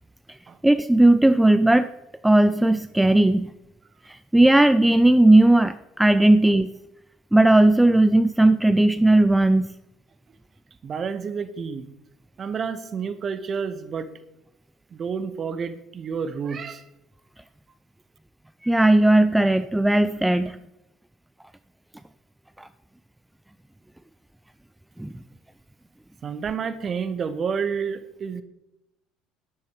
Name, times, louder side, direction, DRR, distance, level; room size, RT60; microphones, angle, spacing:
voice 1, 0.6-1.9 2.2-3.5 4.1-6.7 7.3-9.7 18.6-20.6 22.6-22.7 25.0-25.1, right 1 dB, 5° right, 12 dB, 0.5 m, -17 dB
voice 2, 10.8-11.9 12.4-14.1 14.9-16.8 26.2-28.4, right 6 dB, 35° right, 12 dB, 1.3 m, -29 dB
12.5 x 11.0 x 4.8 m, 0.86 s
figure-of-eight pair, 60°, 0 cm